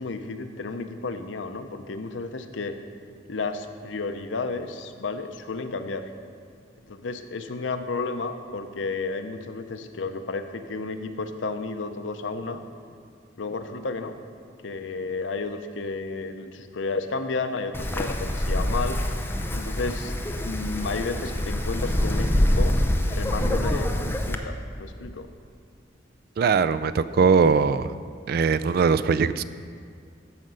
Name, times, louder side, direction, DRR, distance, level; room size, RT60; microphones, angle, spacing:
voice 1, 0.0-2.8 3.3-6.1 6.9-12.6 13.4-14.1 14.6-20.1 20.4-25.3, left 3 dB, 85° left, 8 dB, 0.6 m, -32 dB
Wind, 17.7-24.4, left 1 dB, 10° left, 0.6 m, -25 dB
voice 2, 26.4-27.9 28.3-29.4, right 5 dB, 55° right, 15 dB, 0.3 m, -21 dB
14.0 x 5.1 x 5.5 m, 2.2 s
head